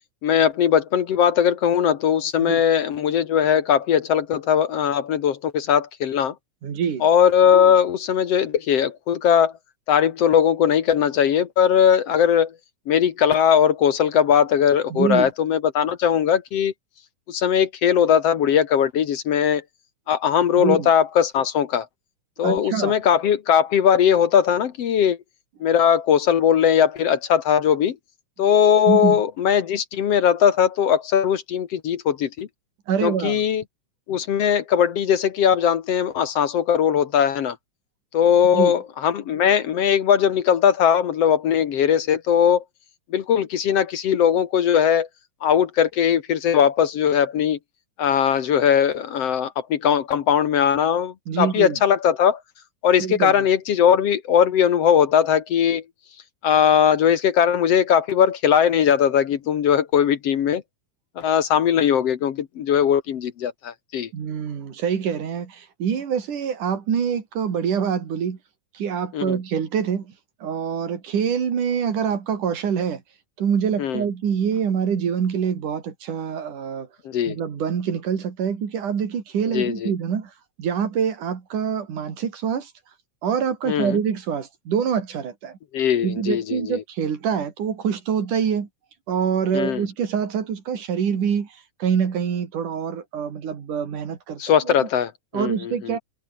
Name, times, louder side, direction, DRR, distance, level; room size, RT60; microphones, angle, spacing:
voice 1, 0.2-6.3 7.0-9.5 9.9-12.5 12.9-16.7 17.3-19.6 20.1-21.9 22.4-25.2 25.6-28.0 28.4-32.5 33.0-33.6 34.1-37.6 38.1-42.6 43.1-45.1 45.4-47.6 48.0-52.4 52.8-55.8 56.4-60.6 61.2-64.1 69.1-69.4 73.8-74.0 77.1-77.4 79.5-79.9 83.7-84.0 85.7-86.8 89.5-89.8 94.4-96.0, left 8 dB, 60° left, 2.1 m, -19 dB
voice 2, 6.6-7.0 14.9-15.3 20.6-20.9 22.4-22.9 28.9-29.2 32.9-33.4 38.4-38.7 51.3-51.8 53.0-53.4 64.1-68.4 68.7-70.1 70.4-73.0 73.4-76.9 77.3-80.3 80.6-82.7 83.2-85.6 86.0-88.7 89.1-91.5 91.8-94.9 95.3-96.0, right 7 dB, 80° right, 4.4 m, -25 dB
omnidirectional pair, 3.5 m